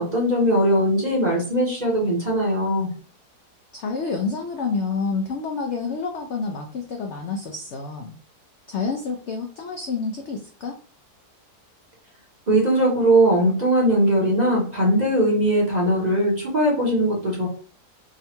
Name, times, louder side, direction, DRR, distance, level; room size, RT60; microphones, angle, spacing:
voice 1, 0.0-2.9 12.5-17.5, right 1 dB, 30° right, -3 dB, 0.8 m, -20 dB
voice 2, 3.7-8.1 8.7-10.8, left 4 dB, 70° left, 3 dB, 0.6 m, -28 dB
3.7 x 2.2 x 4.2 m, 0.41 s
omnidirectional pair, 1.8 m